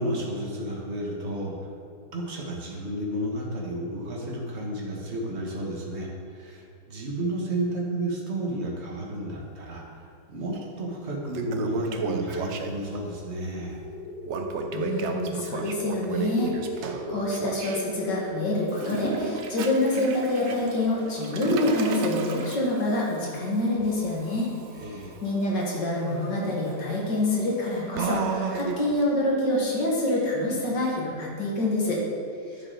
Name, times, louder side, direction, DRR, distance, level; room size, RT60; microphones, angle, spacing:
voice 1, 0.0-1.7 2.1-9.9 10.3-13.8 24.8-25.2, right 1 dB, 40° right, -2 dB, 1.8 m, -32 dB
Toilet flush, 10.5-10.6 11.1-13.0 14.3-17.8 18.7-29.0, right 5 dB, 65° right, 0.7 m, -34 dB
sound 1, 13.8-18.8, left 2 dB, 25° left, 1.3 m, -36 dB
voice 2, 14.7-24.5 25.2-32.0, left 1 dB, 80° left, -3 dB, 2.5 m, -26 dB
10.5 x 6.9 x 4.1 m, 2.5 s
omnidirectional pair, 1.9 m